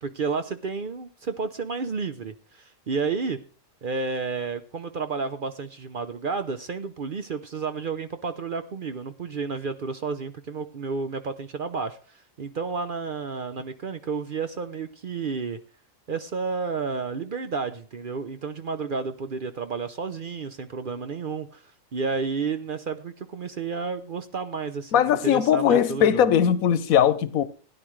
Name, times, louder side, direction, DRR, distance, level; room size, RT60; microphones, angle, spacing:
voice 1, 0.0-3.4 3.8-15.6 16.1-21.6 21.9-26.3, right 4 dB, 50° right, 0.7 m, -31 dB
voice 2, 24.9-27.4, left 9 dB, 85° left, 1.2 m, -20 dB
16.5 x 10.0 x 3.2 m
omnidirectional pair, 1.4 m